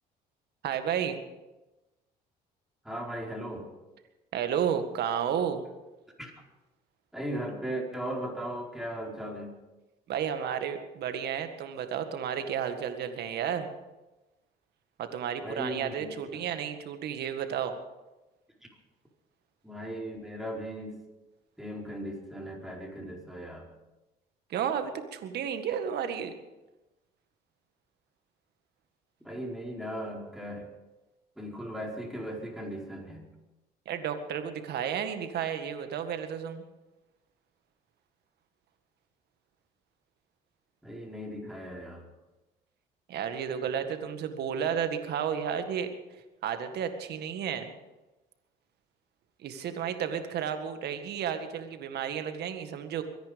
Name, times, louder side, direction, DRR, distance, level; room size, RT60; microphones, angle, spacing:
voice 1, 0.6-1.2 4.3-5.6 10.1-13.7 15.0-17.7 24.5-26.3 33.9-36.6 43.1-45.9 46.4-47.7 49.4-53.0, right 8 dB, 65° right, 8 dB, 1.9 m, -32 dB
voice 2, 2.8-3.7 6.2-6.4 7.1-9.5 15.4-16.4 18.6-18.7 19.6-21.0 21.6-23.7 29.2-30.7 31.4-33.3 40.8-42.0, equal, ahead, -1 dB, 4.6 m, -37 dB
23.5 x 10.5 x 5.3 m, 1.1 s
supercardioid pair, 80°, 18 cm